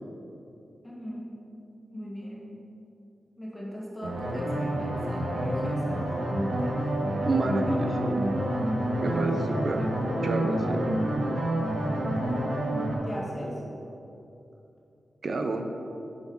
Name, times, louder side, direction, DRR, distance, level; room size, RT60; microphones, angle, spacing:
voice 1, 0.8-1.3 1.9-2.4 3.4-6.0 7.1-7.3 7.9-8.3 13.0-13.5, equal, 15° left, -5 dB, 1.4 m, -40 dB
sound 1, 4.0-12.9, right 1 dB, 80° right, 1.3 m, -28 dB
voice 2, 7.2-8.2 9.0-9.9 10.2-10.8 15.2-15.7, right 2 dB, 55° right, 5 dB, 0.6 m, -29 dB
6.9 x 4.6 x 5.2 m, 2.8 s
wide cardioid pair, 100°, 0 cm